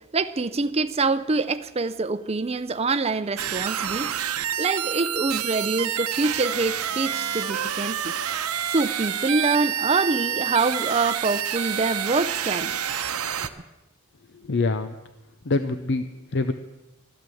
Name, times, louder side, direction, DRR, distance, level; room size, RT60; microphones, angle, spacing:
voice 1, 0.1-4.1 4.6-8.0 8.7-12.9, right 3 dB, 30° right, 0.6 m, -25 dB
sound 1, 3.4-13.5, right 9 dB, 90° right, 0.8 m, -28 dB
voice 2, 14.3-15.0 15.4-16.5, left 3 dB, 55° left, 0.6 m, -25 dB
14.0 x 12.0 x 7.7 m
head